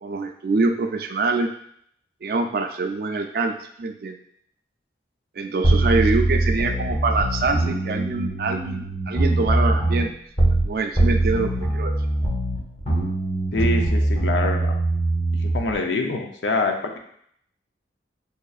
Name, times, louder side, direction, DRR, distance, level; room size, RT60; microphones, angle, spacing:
voice 1, 0.0-1.5 2.2-4.2 5.4-10.1 10.6-11.9, right 3 dB, 55° right, 5 dB, 0.3 m, -25 dB
sound 1, 5.6-10.7 11.0-15.7, right 1 dB, 30° left, 0.8 m, -22 dB
voice 2, 13.5-14.7 15.4-17.0, left 3 dB, 85° left, 4 dB, 0.5 m, -25 dB
5.4 x 2.5 x 2.3 m, 0.68 s
head